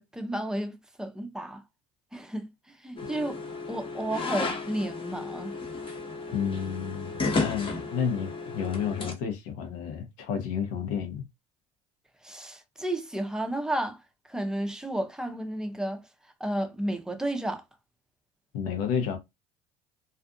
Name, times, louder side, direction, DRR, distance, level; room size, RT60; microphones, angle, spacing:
voice 1, 0.0-1.6 2.1-2.5 2.8-3.4 3.7-5.6 12.2-14.0 14.3-16.0 16.4-17.6, right 1 dB, 5° right, 0.5 m, -32 dB
sound 1, 3.0-9.1, left 3 dB, 30° left, 0.9 m, -33 dB
voice 2, 6.3-11.2 18.5-19.2, left 7 dB, 80° left, 0.8 m, -31 dB
2.5 x 2.4 x 2.5 m
hypercardioid pair, 75°, 17 cm